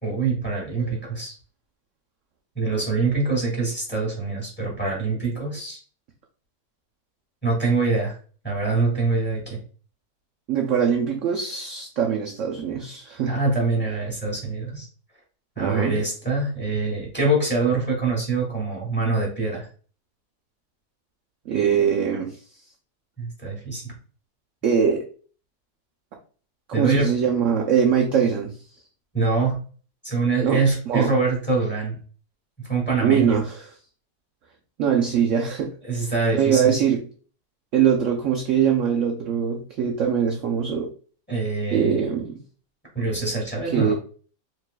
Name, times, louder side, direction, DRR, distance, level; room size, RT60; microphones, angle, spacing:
voice 1, 0.0-1.3 2.6-5.8 7.4-8.1 8.4-9.6 13.3-14.9 15.6-19.7 23.2-23.8 26.7-27.1 29.1-29.6 30.0-32.0 32.6-33.4 35.8-36.8 41.3-42.1 42.9-44.0, right 3 dB, 5° left, -2 dB, 1.8 m, -24 dB
voice 2, 10.5-13.3 15.6-15.9 21.5-22.4 24.6-25.0 26.8-28.6 30.4-31.1 33.0-33.7 34.8-36.1 36.3-37.0 37.7-40.9 41.7-42.4 43.6-44.0, right 7 dB, 65° right, 1 dB, 0.8 m, -22 dB
4.8 x 3.6 x 2.2 m, 0.40 s
omnidirectional pair, 1.7 m